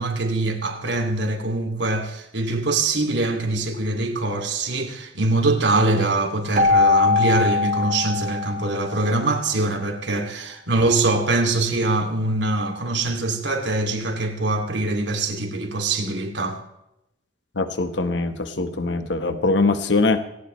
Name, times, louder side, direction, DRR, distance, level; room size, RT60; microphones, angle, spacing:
voice 1, 0.0-16.6, right 2 dB, 70° right, 2.5 m, -23 dB
Keyboard (musical), 6.5-9.2, left 3 dB, 45° right, 1.4 m, -21 dB
voice 2, 17.6-20.2, left 3 dB, 70° left, 1.2 m, -22 dB
19.0 x 18.5 x 3.2 m
head